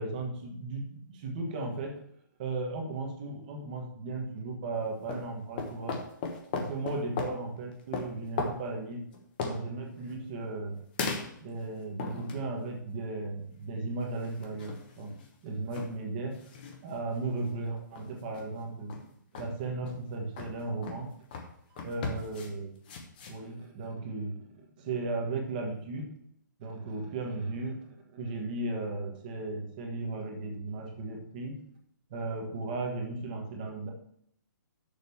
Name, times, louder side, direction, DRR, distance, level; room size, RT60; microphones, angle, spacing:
voice 1, 0.0-2.0 2.4-6.0 6.5-9.0 9.4-10.8 11.4-15.1 15.4-16.3 16.8-19.0 19.4-21.1 21.8-22.7 23.3-26.1 26.6-31.5 32.1-33.9, right 3 dB, 25° right, 1 dB, 1.5 m, -36 dB
sound 1, 4.9-5.3 5.6-7.4 7.9-8.6 9.1-9.6 11.0-11.6 12.0-12.6 14.2-15.3 15.7-15.9 16.2-16.8 17.4-17.5 18.0-18.5 18.9-19.0 19.3-19.5 19.9-20.0 20.4-20.5 20.8-21.0 21.3-21.5 21.8-22.5 22.9-23.4, left 4 dB, 30° left, 1.0 m, -37 dB
6.8 x 5.0 x 7.0 m, 0.69 s
hypercardioid pair, 170°, 11 cm